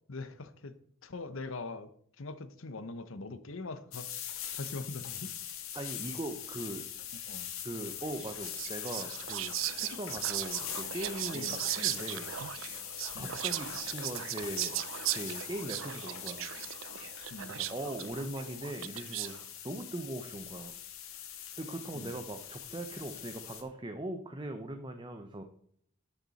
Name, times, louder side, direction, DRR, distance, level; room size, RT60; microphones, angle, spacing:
voice 1, 0.1-0.7 1.0-1.9 2.2-4.1 4.5-5.3 7.3-7.5 11.3-11.6 13.1-13.4 17.3-17.5 21.9-22.1, left 3 dB, 75° left, 13 dB, 0.9 m, -42 dB
sound 1, 3.9-23.6, left 10 dB, 90° left, 1.6 m, -43 dB
voice 2, 5.7-6.9 7.6-12.5 13.2-14.8 15.1-16.5 17.5-19.4 19.6-20.7 21.6-25.4, right 1 dB, 20° right, 6 dB, 0.7 m, -40 dB
Whispering, 8.1-19.4, right 14 dB, 70° right, 0.4 m, -38 dB
12.5 x 6.9 x 4.2 m, 0.64 s
head